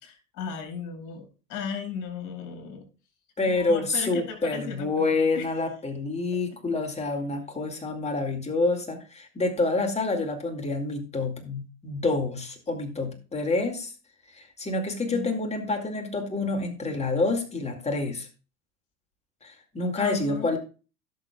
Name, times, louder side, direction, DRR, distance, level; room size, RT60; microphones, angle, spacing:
voice 1, 0.0-2.9 3.5-5.6 6.5-6.6 15.0-15.3 20.0-20.6, left 7 dB, 45° left, 2 dB, 5.2 m, -36 dB
voice 2, 3.4-13.9 14.3-18.3 19.4-20.6, left 3 dB, 15° left, 4 dB, 2.3 m, -28 dB
17.0 x 6.6 x 2.3 m, 0.34 s
figure-of-eight pair, 80°, 41 cm